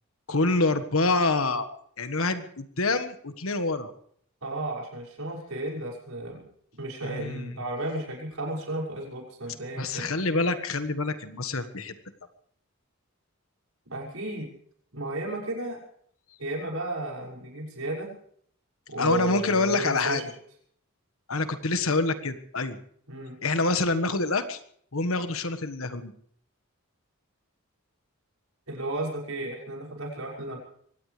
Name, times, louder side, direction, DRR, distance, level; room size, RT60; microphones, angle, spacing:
voice 1, 0.3-1.7 2.0-3.9 7.0-7.6 9.8-11.9 19.0-20.2 21.3-22.8 23.4-24.6 24.9-26.1, left 3 dB, 75° left, 10 dB, 1.5 m, -26 dB
voice 2, 4.4-6.4 6.7-10.1 13.9-14.5 14.9-15.8 16.4-18.1 18.9-20.3 23.1-23.4 28.7-30.6, right 1 dB, 80° right, -2 dB, 6.2 m, -33 dB
23.5 x 18.0 x 3.4 m, 0.63 s
head